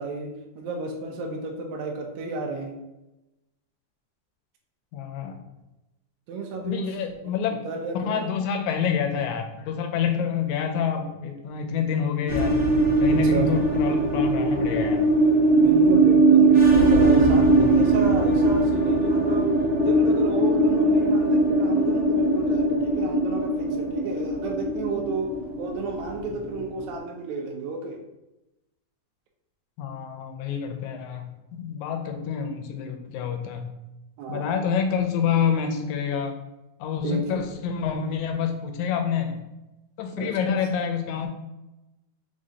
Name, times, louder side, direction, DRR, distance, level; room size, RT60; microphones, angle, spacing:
voice 1, 0.0-2.8 6.3-6.9 7.6-8.3 13.3-13.5 15.6-19.5 19.8-28.0 34.2-34.5 37.0-37.4 40.2-40.5, right 3 dB, 80° right, 2 dB, 1.8 m, -32 dB
voice 2, 4.9-5.4 6.5-7.6 7.9-12.6 13.0-15.0 29.8-33.7 34.3-36.3 36.8-39.4 40.0-41.3, left 7 dB, 80° left, 4 dB, 2.0 m, -27 dB
sound 1, 12.3-27.0, right 2 dB, 40° right, 2.0 m, -20 dB
5.1 x 3.6 x 2.7 m, 0.97 s
omnidirectional pair, 3.5 m